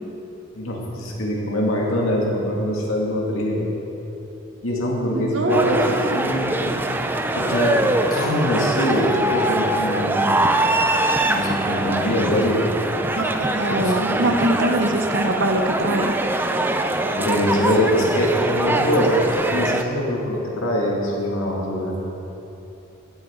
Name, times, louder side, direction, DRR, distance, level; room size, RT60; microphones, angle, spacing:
voice 1, 0.5-3.7 4.6-6.9 7.3-7.8 8.1-10.3 11.3-12.6 13.7-14.2 17.1-22.0, equal, 80° left, -3 dB, 2.0 m, -23 dB
voice 2, 5.1-6.2 13.2-16.1, right 1 dB, 60° right, 3 dB, 0.8 m, -22 dB
sound 1, 5.5-19.8, right 2 dB, 10° right, 0.3 m, -23 dB
16.0 x 7.4 x 3.7 m, 3.0 s
head